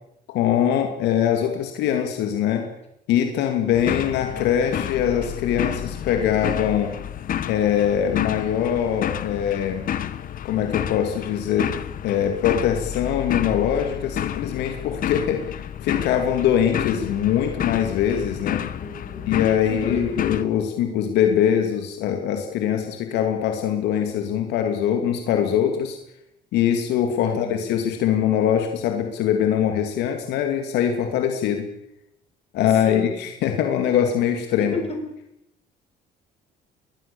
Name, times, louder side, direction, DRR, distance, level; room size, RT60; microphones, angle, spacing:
voice 1, 0.3-2.7 3.1-6.9 7.5-9.9 10.4-11.7 12.0-18.6 19.3-26.0 26.5-31.7 32.5-34.7, left 9 dB, 85° left, 5 dB, 2.7 m, -22 dB
sound 1, 3.7-20.5, left 10 dB, 55° left, 1.3 m, -30 dB
voice 2, 18.8-19.3 19.6-20.1 27.2-27.6 32.8-33.1 34.6-35.1, left 3 dB, 35° left, 4 dB, 6.5 m, -32 dB
22.0 x 21.0 x 7.2 m, 0.82 s
cardioid pair, 110°, 17 cm